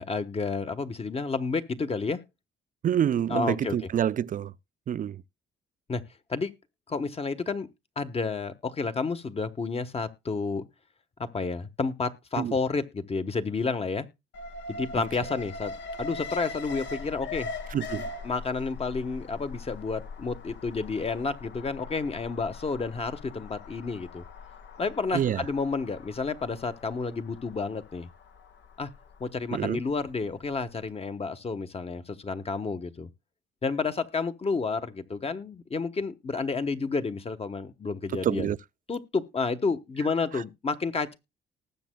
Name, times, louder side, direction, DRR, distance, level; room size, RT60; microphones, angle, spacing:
voice 1, 0.0-2.2 3.3-3.7 5.9-6.0 6.3-6.5 6.9-7.7 8.0-10.7 11.3-14.1 14.7-15.7 16.0-17.5 18.2-24.2 24.8-28.1 28.8-28.9 29.2-33.1 33.6-38.5 38.9-41.1, left 4 dB, 30° left, 1.1 m, -30 dB
voice 2, 2.8-4.5 4.9-5.2 12.4-12.5 15.0-15.1 17.7-18.1 25.1-25.4 29.5-29.8 38.1-38.6 40.3-40.4, right 9 dB, 45° right, 0.5 m, -27 dB
Alarm, 14.3-30.4 30.8-30.9, left 3 dB, 65° left, 1.1 m, -41 dB
19.0 x 7.4 x 2.2 m
cardioid pair, 90°, 20 cm